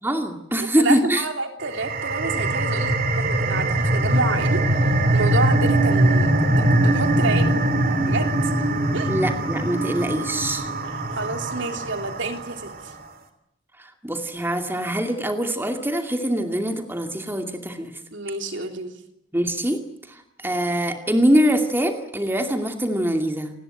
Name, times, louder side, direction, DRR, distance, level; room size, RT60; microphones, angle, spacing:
voice 1, 0.0-1.3 9.1-10.7 13.8-18.0 19.3-19.8 20.1-23.5, equal, 10° right, 5 dB, 2.4 m, -23 dB
voice 2, 0.6-7.5 8.1-8.5 8.9-9.1 10.8-12.9 18.1-18.9, right 2 dB, 60° right, 5 dB, 3.4 m, -29 dB
sound 1, 1.6-12.8, right 1 dB, 45° right, 3.1 m, -22 dB
29.0 x 20.0 x 9.1 m, 0.81 s
head